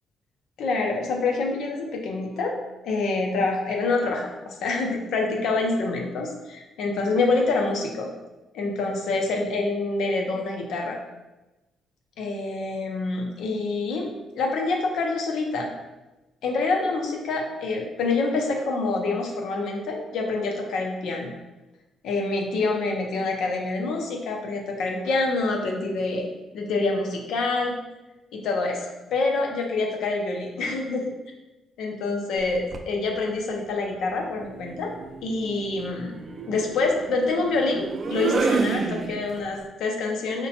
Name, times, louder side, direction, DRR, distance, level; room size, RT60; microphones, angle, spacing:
voice 1, 0.6-2.6 2.8-8.1 8.5-11.0 12.2-15.7 16.4-21.3 22.0-26.3 26.5-27.8 28.3-31.1 31.8-34.9 35.2-36.1 36.5-40.5, left 3 dB, 80° left, 1 dB, 0.6 m, -26 dB
sound 1, 32.4-32.9 34.3-39.6, right 4 dB, 45° right, 0.3 m, -30 dB
4.9 x 2.2 x 2.9 m, 1.0 s
cardioid pair, 90°, 0 cm